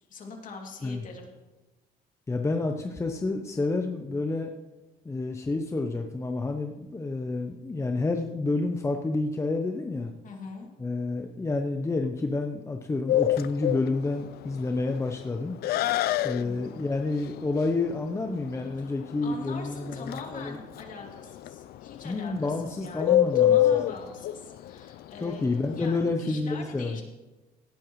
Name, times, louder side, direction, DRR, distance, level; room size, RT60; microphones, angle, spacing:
voice 1, 0.1-1.3 10.2-10.7 16.4-16.8 18.8-18.9 19.2-27.0, left 4 dB, 50° left, 1 dB, 2.7 m, -43 dB
voice 2, 2.3-4.5 5.0-10.1 10.8-15.6 16.2-20.6 22.0-23.6 25.2-27.0, left 3 dB, 15° left, 4 dB, 0.8 m, -29 dB
Bird, 13.1-26.1, left 12 dB, 70° left, 0.5 m, -27 dB
17.5 x 9.9 x 3.1 m, 1.1 s
cardioid pair, 110°, 17 cm